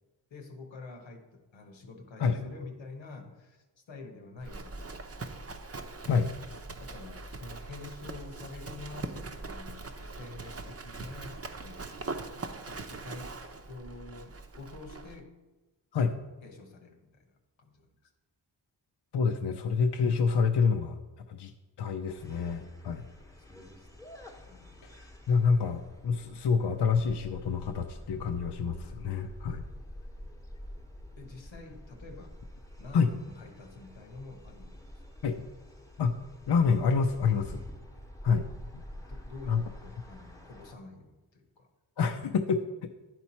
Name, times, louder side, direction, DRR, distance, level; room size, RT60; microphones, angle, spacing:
voice 1, 0.3-5.4 6.8-13.4 13.7-15.4 16.4-17.9 22.9-23.1 23.5-24.0 24.5-24.8 31.2-32.4 32.8-34.8 39.0-41.7, left 3 dB, 90° left, 4 dB, 1.1 m, -48 dB
Livestock farm animals working animals, 4.4-15.2, right 3 dB, 35° right, 0.7 m, -42 dB
voice 2, 19.1-21.0 21.3-21.5 21.8-23.0 24.8-29.6 32.9-33.1 35.2-35.4 36.0-36.1 36.5-37.6 38.2-38.5 38.7-38.8 39.5-39.6 42.0-42.9, left 5 dB, 65° left, 6 dB, 0.6 m, -27 dB
sound 1, 22.1-40.7, equal, 5° left, 1.0 m, -48 dB
10.5 x 4.4 x 4.3 m, 1.1 s
cardioid pair, 55°, 44 cm